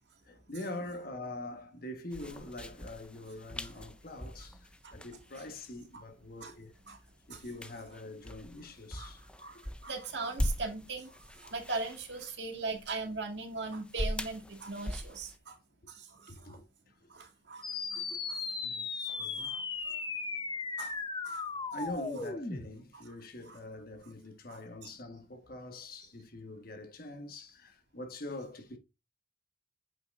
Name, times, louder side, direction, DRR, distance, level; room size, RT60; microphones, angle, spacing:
voice 1, 0.2-6.8 7.3-9.2 16.3-16.9 18.1-18.2 18.6-19.5 21.7-28.8, left 2 dB, 50° left, 1.3 m, -44 dB
sound 1, 2.1-15.4, left 1 dB, 5° left, 0.4 m, -41 dB
voice 2, 9.4-15.6 15.9-16.6 17.1-18.4 19.1-20.0 20.8-21.0 21.2-21.4 23.5-23.6 24.5-24.6, right 3 dB, 65° right, 2.0 m, -40 dB
sound 2, 17.6-22.6, left 4 dB, 25° left, 0.8 m, -37 dB
8.5 x 5.8 x 2.5 m
head